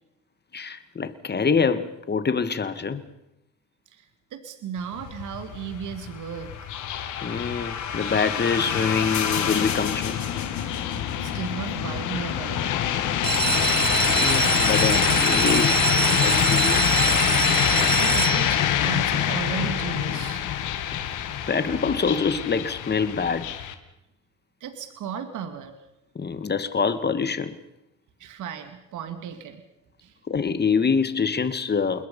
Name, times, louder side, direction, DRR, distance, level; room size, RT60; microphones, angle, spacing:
voice 1, 0.5-3.0 7.2-10.2 14.1-15.8 16.2-16.9 21.5-23.5 26.2-27.6 30.3-32.1, left 5 dB, 35° left, 11 dB, 2.1 m, -25 dB
voice 2, 3.9-6.5 7.3-7.5 10.9-12.8 14.6-14.7 17.6-20.5 24.6-25.7 28.2-29.6 30.0-30.1, right 7 dB, 80° right, 8 dB, 2.5 m, -35 dB
sound 1, 4.8-23.7, left 10 dB, 85° left, 2.0 m, -25 dB
sound 2, 6.0-11.3, left 7 dB, 70° left, 3.6 m, -31 dB
sound 3, 13.1-18.8 19.5-20.0 20.4-20.5 20.7-20.8 21.2-21.3, right 6 dB, 35° right, 1.1 m, -25 dB
28.0 x 21.0 x 5.6 m, 0.88 s
cardioid pair, 90°, 30 cm